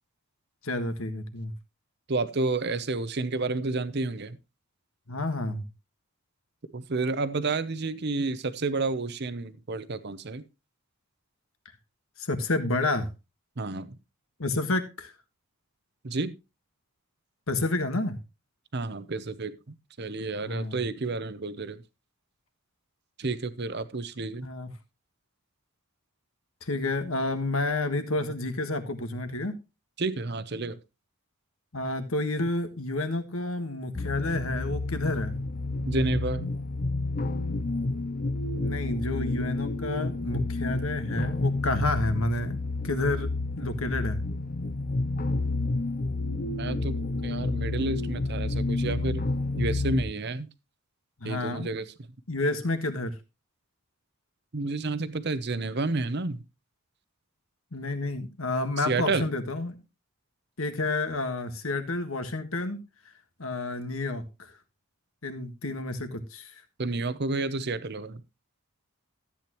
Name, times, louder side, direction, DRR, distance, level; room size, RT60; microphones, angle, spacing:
voice 1, 0.6-1.5 5.1-5.6 12.2-13.1 14.4-15.1 17.5-18.2 20.4-20.8 24.4-24.7 26.6-29.6 31.7-35.3 38.6-42.6 42.8-43.3 43.6-44.2 51.2-51.7 52.3-53.1 57.7-59.8 60.6-62.8 63.4-64.5 65.2-66.5, left 2 dB, 70° left, 8 dB, 1.6 m, -30 dB
voice 2, 2.1-4.4 6.7-10.4 13.6-14.0 16.0-16.3 18.7-19.5 20.0-21.8 23.2-24.5 30.0-30.8 35.8-36.5 46.6-49.2 49.6-50.5 51.2-51.9 54.5-56.4 58.8-59.3 66.8-68.2, right 3 dB, 50° right, 14 dB, 0.8 m, -30 dB
sound 1, 33.9-50.1, left 2 dB, 40° left, 0.6 m, -30 dB
13.5 x 8.7 x 3.0 m, 0.26 s
head